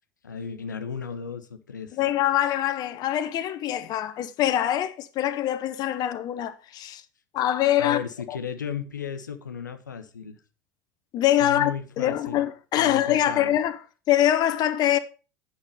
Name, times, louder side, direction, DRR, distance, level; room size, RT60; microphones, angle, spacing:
voice 1, 0.2-2.0 7.8-10.4 11.4-12.4 12.8-13.5, left 7 dB, 85° left, 0.9 m, -35 dB
voice 2, 2.0-7.0 7.3-8.0 8.3-8.4 11.1-11.7 12.0-13.8 14.1-15.0, left 12 dB, 45° left, 0.8 m, -24 dB
8.8 x 5.7 x 5.4 m
hypercardioid pair, 80°, 10 cm